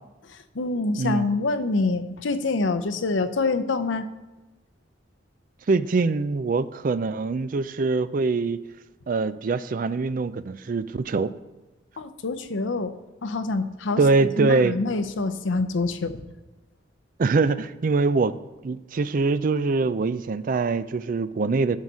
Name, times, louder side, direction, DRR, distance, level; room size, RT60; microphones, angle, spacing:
voice 1, 0.3-4.1 12.0-12.9 13.2-14.0 14.4-16.2, left 3 dB, 85° left, 10 dB, 0.7 m, -26 dB
voice 2, 5.7-8.6 9.1-11.3 14.0-14.8 17.2-18.4 18.6-21.8, right 4 dB, 45° right, 14 dB, 0.4 m, -23 dB
11.0 x 4.0 x 6.2 m, 1.1 s
head